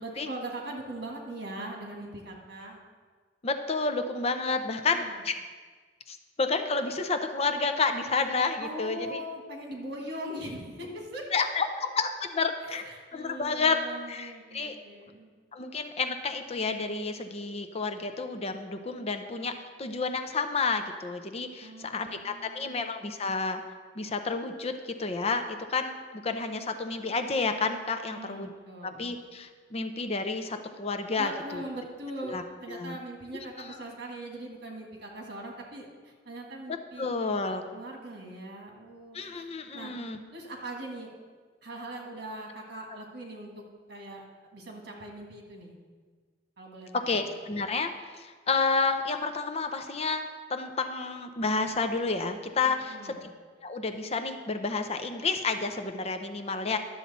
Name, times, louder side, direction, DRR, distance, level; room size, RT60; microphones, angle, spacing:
voice 1, 0.0-2.8 4.9-5.2 8.6-11.7 12.6-15.3 21.6-22.9 28.1-29.0 31.2-37.4 37.7-39.9 40.3-41.1 41.6-43.5 43.9-44.2 44.5-45.8 46.6-47.2 52.6-53.3, right 1 dB, 60° right, 1 dB, 1.8 m, -41 dB
voice 2, 3.4-5.3 6.1-9.2 11.3-11.7 12.0-12.8 13.1-13.8 14.1-14.8 15.5-19.5 19.8-23.6 24.0-28.5 29.0-31.6 32.2-32.4 32.7-33.0 33.3-33.8 37.0-37.6 39.1-40.2 47.1-50.2 50.5-53.3 53.6-56.8, left 4 dB, 35° left, 7 dB, 0.6 m, -30 dB
11.5 x 7.2 x 4.2 m, 1.5 s
head